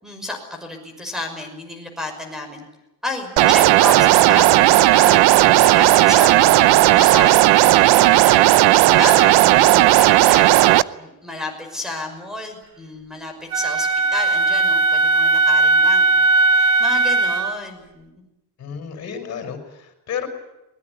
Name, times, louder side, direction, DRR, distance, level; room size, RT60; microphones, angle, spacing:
voice 1, 0.0-2.7 3.0-6.6 6.9-16.2 16.6-18.1, left 2 dB, ahead, 5 dB, 5.9 m, -32 dB
sound 1, 3.4-10.8, right 16 dB, 85° right, 0.9 m, -13 dB
voice 2, 5.4-5.8 18.6-20.3, left 7 dB, 40° left, 6 dB, 5.8 m, -32 dB
Wind instrument woodwind instrument, 13.5-17.6, right 3 dB, 55° right, 2.3 m, -17 dB
23.5 x 21.0 x 9.6 m, 0.93 s
cardioid pair, 175°, 39 cm